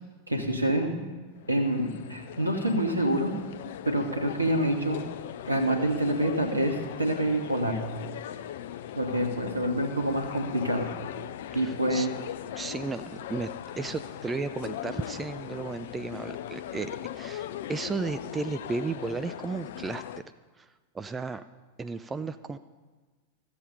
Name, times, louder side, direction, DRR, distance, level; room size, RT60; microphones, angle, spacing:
voice 1, 0.3-1.0 1.5-3.3 3.8-5.0 5.4-7.8 8.9-10.9 11.5-12.1, right 1 dB, 80° right, 5 dB, 1.3 m, -27 dB
sound 1, 1.4-20.2, left 11 dB, 55° left, 0.4 m, -39 dB
voice 2, 11.5-12.1 12.5-13.5 13.8-20.0 20.6-20.7 20.9-21.4 21.8-22.6, right 4 dB, 15° right, 11 dB, 0.4 m, -34 dB
14.0 x 7.8 x 5.2 m, 1.3 s
figure-of-eight pair, 90°, 0 cm